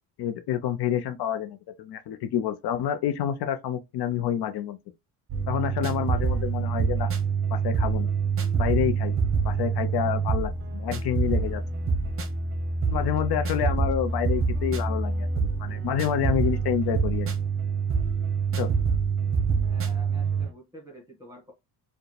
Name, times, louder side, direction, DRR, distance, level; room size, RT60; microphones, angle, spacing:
voice 1, 0.2-4.8 5.5-7.1 7.5-8.1 8.5-9.1 9.4-11.6 12.9-17.3 18.6-18.7, left 10 dB, 70° left, 0.6 m, -28 dB
sound 1, 5.3-20.5, right 5 dB, 30° right, 0.7 m, -26 dB
voice 2, 19.7-21.5, right 1 dB, 10° right, 1.5 m, -48 dB
4.6 x 2.3 x 3.2 m
cardioid pair, 145°, 41 cm